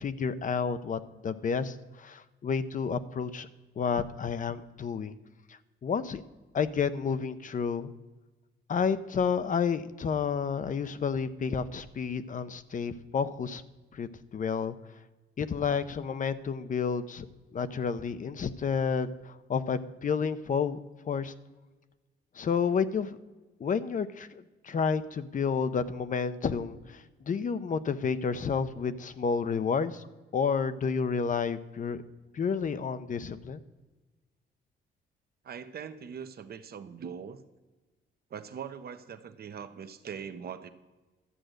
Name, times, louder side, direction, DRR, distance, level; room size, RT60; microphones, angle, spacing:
voice 1, 0.0-3.5 3.8-5.1 5.8-6.2 6.5-7.9 8.7-13.6 13.9-14.7 15.4-17.3 17.5-20.8 21.1-21.3 22.4-23.2 23.6-30.0 30.3-32.0 32.3-33.6, left 6 dB, 40° left, 12 dB, 0.7 m, -30 dB
voice 2, 35.4-37.4 38.3-40.7, right 7 dB, 50° right, 9 dB, 0.9 m, -41 dB
12.5 x 7.7 x 6.5 m, 1.2 s
cardioid pair, 90°, 20 cm